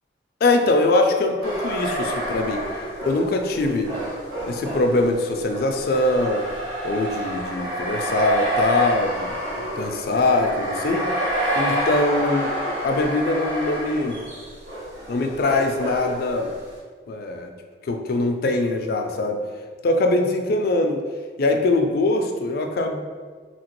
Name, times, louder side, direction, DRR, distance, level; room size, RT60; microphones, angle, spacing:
voice 1, 0.4-2.6 3.0-3.9 4.4-6.5 6.8-11.1 11.6-12.5 12.8-14.2 15.1-16.5 17.1-17.5 17.8-19.4 19.8-21.0 21.4-23.0, left 2 dB, 55° left, 4 dB, 0.3 m, -22 dB
sound 1, 1.4-16.8, right 1 dB, 90° right, 1.2 m, -28 dB
2.8 x 2.8 x 2.9 m, 1.5 s
head